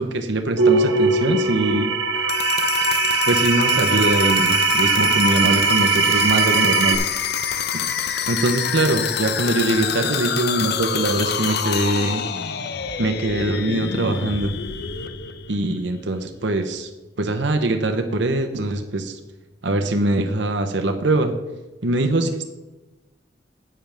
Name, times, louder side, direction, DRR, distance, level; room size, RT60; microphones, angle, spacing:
voice 1, 0.0-1.9 3.3-7.0 8.3-12.2 13.0-14.6 15.5-16.9 17.2-19.2 19.6-21.3 21.8-22.4, right 2 dB, 70° right, 6 dB, 0.9 m, -22 dB
sound 1, 0.6-7.0, right 4 dB, 90° right, 1.3 m, -20 dB
sound 2, 2.1-16.0, left 8 dB, 60° left, 0.6 m, -27 dB
10.5 x 8.8 x 3.5 m, 1.1 s
head